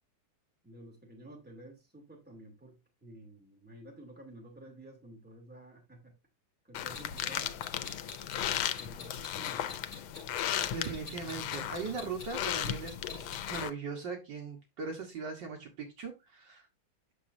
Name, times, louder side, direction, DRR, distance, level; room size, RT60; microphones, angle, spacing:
voice 1, 0.6-6.1 6.6-7.6 8.4-9.8, right 1 dB, 5° right, 2.4 m, -52 dB
sound 1, 6.7-13.7, left 10 dB, 90° left, 1.5 m, -36 dB
Clock, 6.9-13.6, left 4 dB, 35° left, 4.0 m, -47 dB
voice 2, 10.7-16.7, right 4 dB, 65° right, 1.9 m, -39 dB
8.4 x 6.2 x 2.6 m
omnidirectional pair, 2.2 m